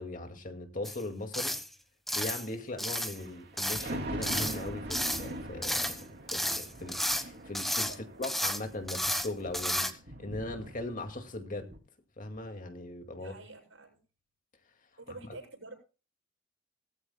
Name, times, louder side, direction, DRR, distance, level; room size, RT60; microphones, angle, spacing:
voice 1, 0.0-1.6 2.1-6.0 6.3-7.9 8.2-9.9 10.2-11.7 12.2-13.3, left 2 dB, 45° left, 2.2 m, -39 dB
sound 1, 0.8-1.0 1.3-1.7 2.1-2.5 2.8-3.2 3.6-3.9 4.2-4.6 4.9-5.3 5.6-6.0 6.3-7.2 7.5-8.0 8.2-8.6 8.9-9.3 9.5-9.9, equal, ahead, 1.3 m, -32 dB
Thunder, 3.0-11.3 11.7-11.8, right 1 dB, 55° right, 2.7 m, -42 dB
voice 2, 7.9-8.4 13.2-14.0 15.0-15.7, right 3 dB, 80° right, 7.7 m, -48 dB
19.5 x 14.5 x 2.3 m
head